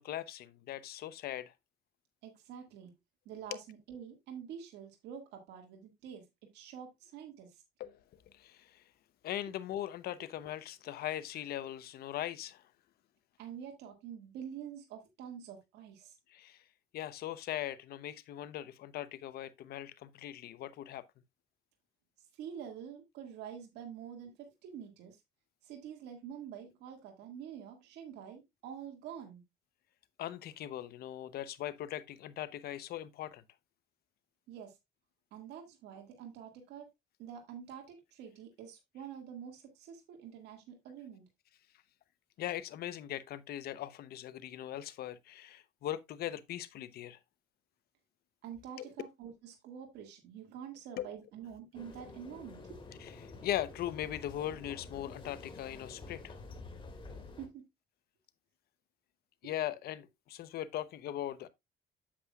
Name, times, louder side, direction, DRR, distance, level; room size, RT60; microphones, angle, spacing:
voice 1, 0.0-1.5 7.8-8.0 8.3-8.8 9.2-12.6 16.3-16.6 16.9-21.0 30.2-33.4 42.4-47.2 48.8-48.9 51.0-51.1 53.0-56.4 59.4-61.5, left 12 dB, 65° left, 0.8 m, -40 dB
voice 2, 2.2-2.9 3.3-6.2 6.5-7.6 13.4-16.2 22.4-25.2 25.6-29.4 34.5-34.8 35.3-36.9 37.2-41.2 48.4-52.8 57.4-57.6, right 8 dB, 80° right, 1.9 m, -47 dB
sound 1, 51.7-57.5, left 3 dB, 30° left, 2.2 m, -49 dB
8.5 x 7.6 x 2.3 m
cardioid pair, 110°, 17 cm